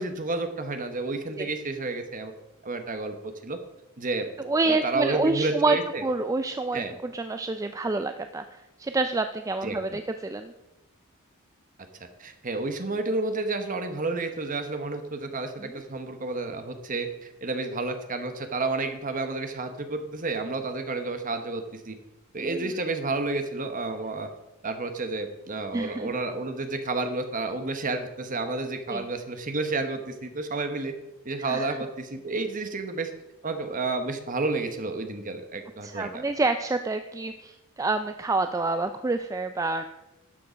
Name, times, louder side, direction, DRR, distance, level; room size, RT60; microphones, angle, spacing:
voice 1, 0.0-2.3 2.6-3.6 4.0-4.3 4.6-6.0 6.7-6.9 9.6-10.0 12.2-22.0 22.3-24.3 24.6-30.9 31.2-33.1 33.4-36.2, right 3 dB, 35° right, 7 dB, 1.1 m, -30 dB
voice 2, 4.5-10.5 15.6-15.8 22.4-22.7 25.7-26.2 28.9-29.0 31.4-31.8 35.8-39.9, right 3 dB, 15° right, 8 dB, 0.3 m, -28 dB
12.5 x 6.8 x 5.1 m, 1.0 s
head